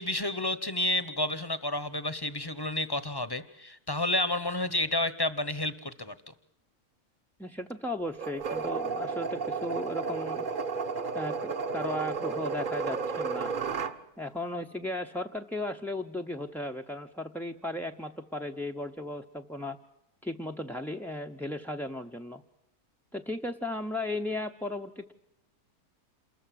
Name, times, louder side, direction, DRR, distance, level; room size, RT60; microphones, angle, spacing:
voice 1, 0.0-6.3, left 2 dB, 20° left, 15 dB, 0.8 m, -30 dB
voice 2, 7.4-10.4 11.1-13.5 14.2-19.8 20.2-22.4 23.1-25.1, left 1 dB, 5° left, 2 dB, 0.4 m, -36 dB
sound 1, 8.2-14.0, right 5 dB, 40° right, 1.0 m, -32 dB
28.0 x 14.5 x 7.6 m, 0.84 s
omnidirectional pair, 1.6 m